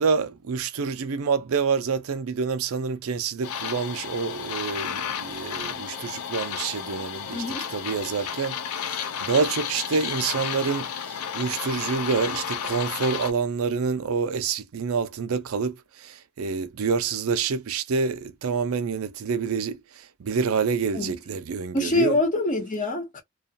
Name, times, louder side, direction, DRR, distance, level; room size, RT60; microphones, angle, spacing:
voice 1, 0.0-7.4 7.7-22.2, right 5 dB, 75° right, 0.4 m, -27 dB
sound 1, 3.4-13.3, left 8 dB, 90° left, 0.4 m, -32 dB
voice 2, 7.3-7.7 20.9-21.1 21.7-23.2, left 2 dB, 35° left, 1.0 m, -25 dB
2.3 x 2.3 x 2.5 m
head